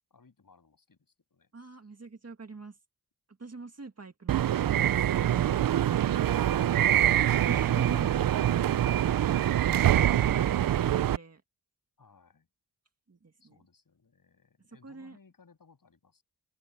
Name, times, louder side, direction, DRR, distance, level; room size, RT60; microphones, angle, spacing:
voice 1, 0.1-1.5 10.6-11.2 12.0-12.5 13.4-16.2, left 5 dB, 60° left, 7.9 m, -62 dB
voice 2, 1.5-2.8 3.4-5.4 7.4-8.4 8.7-11.4 13.1-13.6 14.8-15.2, right 3 dB, 40° right, 2.2 m, -44 dB
sound 1, 4.3-11.2, right 11 dB, 60° right, 0.5 m, -25 dB
open air
wide cardioid pair, 70°, 38 cm